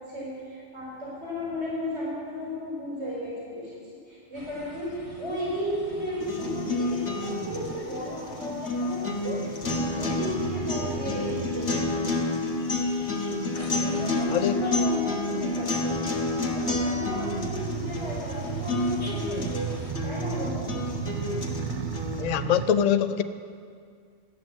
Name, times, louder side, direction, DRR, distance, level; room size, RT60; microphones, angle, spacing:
voice 1, 0.0-3.7 4.1-12.2 13.8-16.1 16.4-19.7 20.0-20.7, equal, 85° right, -7 dB, 4.4 m, -34 dB
sound 1, 4.3-19.9, equal, 30° left, 1.5 m, -47 dB
sound 2, 6.2-22.2, left 2 dB, 80° left, 1.7 m, -30 dB
sound 3, 7.5-7.8 9.6-12.0 15.8-22.7, right 8 dB, 55° right, 0.6 m, -35 dB
voice 2, 22.2-23.2, left 9 dB, 50° left, 11 dB, 0.5 m, -23 dB
13.0 x 9.2 x 7.4 m, 2.2 s
omnidirectional pair, 1.2 m